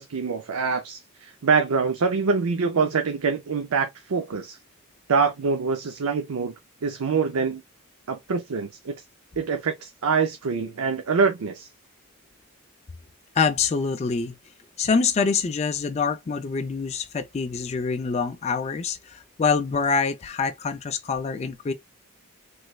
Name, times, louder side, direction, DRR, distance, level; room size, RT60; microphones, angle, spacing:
voice 1, 0.0-4.6 5.1-6.5 6.8-7.6 8.1-8.9 9.4-11.7, right 5 dB, 85° right, 0.5 m, -25 dB
voice 2, 13.3-14.4 14.8-21.7, left 5 dB, 30° left, 0.3 m, -25 dB
3.3 x 3.1 x 2.3 m
head